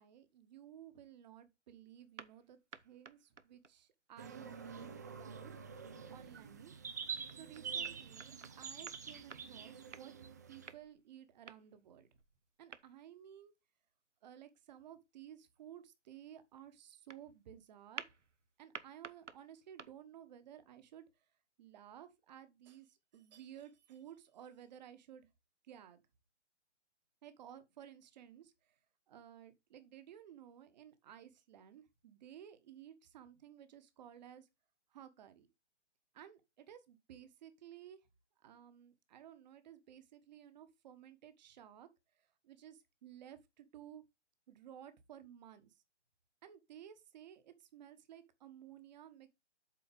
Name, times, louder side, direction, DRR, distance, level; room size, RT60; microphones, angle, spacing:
voice 1, 0.0-5.5 6.1-6.7 7.3-12.1 12.6-13.5 14.2-18.1 18.6-21.1 21.6-25.3 25.6-26.0 27.2-28.8 29.1-34.5 34.9-35.5 36.1-38.0 38.4-41.9 42.2-44.0 44.5-45.8 46.4-49.3, right 10 dB, 40° right, 1.3 m, -55 dB
sound 1, 2.2-3.8 6.8-10.2 10.7-11.8 12.2-13.0 17.1-17.3 18.0-18.4 18.7-19.9, right 5 dB, 90° right, 0.8 m, -52 dB
sound 2, 4.2-10.7, right 6 dB, 15° right, 0.4 m, -46 dB
7.9 x 4.5 x 5.3 m
figure-of-eight pair, 130°, 35 cm